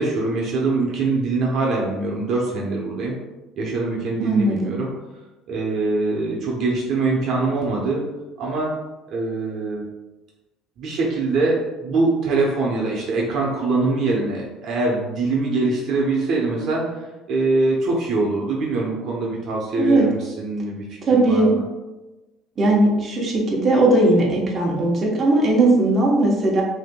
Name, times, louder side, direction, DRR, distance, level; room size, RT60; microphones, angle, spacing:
voice 1, 0.0-3.2 3.6-4.9 5.5-8.0 8.4-8.7 9.1-9.8 10.8-21.6, right 3 dB, 55° right, -3 dB, 0.8 m, -23 dB
voice 2, 4.2-4.6 19.7-20.1 21.0-21.5 22.6-26.6, right 2 dB, 30° right, -3 dB, 1.0 m, -18 dB
6.1 x 2.7 x 2.3 m, 1.1 s
cardioid pair, 130°, 0 cm